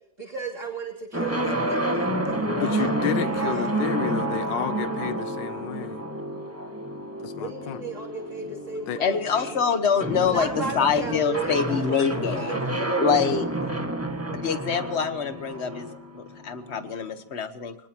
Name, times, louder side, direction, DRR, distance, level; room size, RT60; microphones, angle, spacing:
voice 1, 0.2-3.7 7.4-9.6 10.2-13.5, right 3 dB, 40° right, 3.4 m, -35 dB
sound 1, 1.1-16.9, right 1 dB, 10° right, 1.7 m, -29 dB
voice 2, 2.6-6.0 7.2-7.8 8.9-9.0, left 10 dB, 75° left, 1.5 m, -31 dB
voice 3, 9.0-10.5 10.7-12.6 13.0-13.4 14.3-15.9 16.1-17.7, left 6 dB, 40° left, 1.4 m, -25 dB
25.0 x 19.5 x 3.0 m
omnidirectional pair, 2.0 m